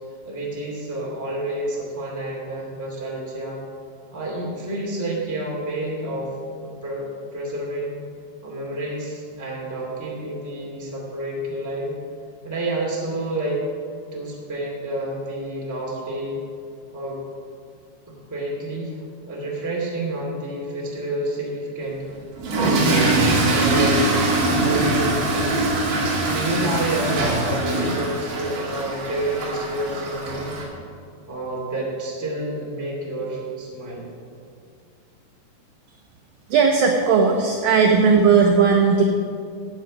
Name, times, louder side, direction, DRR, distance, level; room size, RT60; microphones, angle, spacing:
voice 1, 0.2-3.6 4.1-6.3 6.8-7.1 7.3-8.0 8.4-12.0 12.4-13.6 14.1-16.4 16.9-17.2 18.1-18.9 19.2-22.0 22.6-25.5 26.2-30.6 31.3-34.1, right 1 dB, 5° right, -4 dB, 1.5 m, -29 dB
Toilet flush / Fill (with liquid), 22.3-30.6, right 2 dB, 55° right, 3.6 m, -22 dB
voice 2, 36.5-39.0, right 5 dB, 85° right, 3 dB, 2.0 m, -16 dB
14.5 x 8.8 x 5.3 m, 2.4 s
omnidirectional pair, 5.0 m